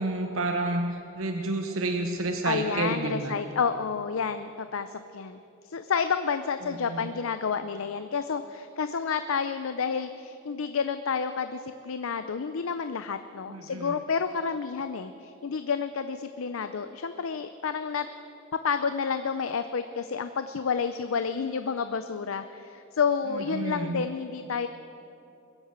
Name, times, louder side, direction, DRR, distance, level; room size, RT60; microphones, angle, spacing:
voice 1, 0.0-3.4 6.6-7.1 13.5-14.0 23.3-24.0, right 2 dB, 80° right, 5 dB, 1.0 m, -30 dB
voice 2, 2.4-5.4 5.6-18.1 18.6-24.7, left 6 dB, 80° left, 10 dB, 0.5 m, -30 dB
21.5 x 8.0 x 8.1 m, 2.9 s
head